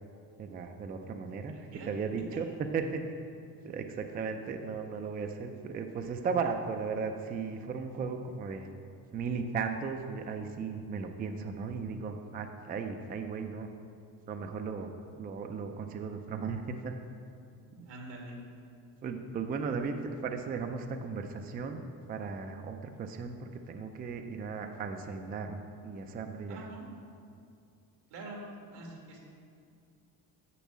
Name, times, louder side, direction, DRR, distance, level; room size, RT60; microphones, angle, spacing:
voice 1, 0.4-3.0 3.6-8.7 9.1-13.7 14.3-16.9 17.8-17.9 19.0-19.9 20.2-21.8 22.1-26.6, right 5 dB, 25° right, 5 dB, 0.3 m, -36 dB
voice 2, 1.5-1.9 2.3-2.4 17.8-18.4 26.5-26.8 28.1-28.4 28.7-29.2, right 2 dB, 90° right, 0 dB, 2.0 m, -45 dB
6.9 x 6.3 x 7.3 m, 2.4 s
cardioid pair, 175°, 40 cm